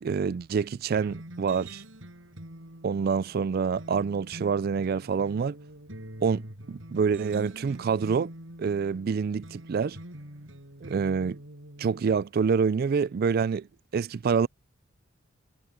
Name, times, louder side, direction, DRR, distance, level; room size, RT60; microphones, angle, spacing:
voice 1, 0.0-1.8 2.8-5.6 6.2-8.3 8.6-10.0 10.8-11.4 11.8-13.7 13.9-14.5, right 5 dB, 50° right, 0.3 m, -27 dB
sound 1, 1.0-12.3, right 1 dB, 75° right, 7.8 m, -45 dB
head